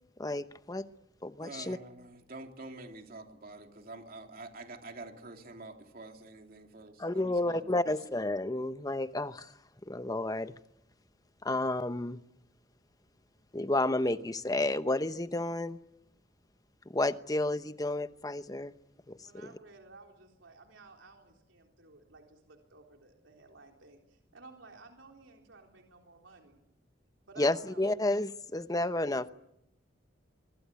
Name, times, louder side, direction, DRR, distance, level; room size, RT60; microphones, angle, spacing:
voice 1, 0.2-0.9 1.2-1.8 7.0-9.5 9.9-10.5 11.4-12.2 13.5-15.8 16.9-18.7 19.1-19.2 27.4-29.3, left 2 dB, 20° left, 12 dB, 0.9 m, -31 dB
voice 2, 1.4-7.8, right 2 dB, 50° right, 4 dB, 3.0 m, -47 dB
voice 3, 19.2-26.6 27.3-27.9, right 3 dB, 90° right, 2 dB, 3.8 m, -55 dB
24.5 x 24.0 x 8.3 m, 0.82 s
head